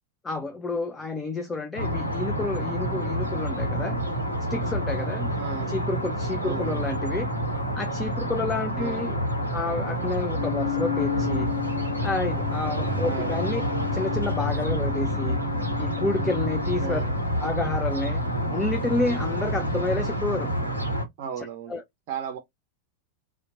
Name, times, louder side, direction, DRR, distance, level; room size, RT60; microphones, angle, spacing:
voice 1, 0.2-4.0 4.5-5.3 5.7-7.3 7.8-9.2 9.5-11.5 12.0-13.6 13.9-15.4 15.8-17.0 17.4-18.2 18.5-20.5 21.7-21.8, left 3 dB, 15° left, 0.4 m, -29 dB
sound 1, 1.8-21.1, equal, 85° left, 0.8 m, -28 dB
voice 2, 5.4-5.7 6.4-6.7 8.8-9.1 13.0-13.3 16.8-17.1 21.2-21.8 22.1-22.4, right 7 dB, 45° right, 0.5 m, -35 dB
Wind instrument woodwind instrument, 10.3-17.0, left 15 dB, 50° left, 0.7 m, -34 dB
2.8 x 2.1 x 2.5 m
figure-of-eight pair, 90°, 0 cm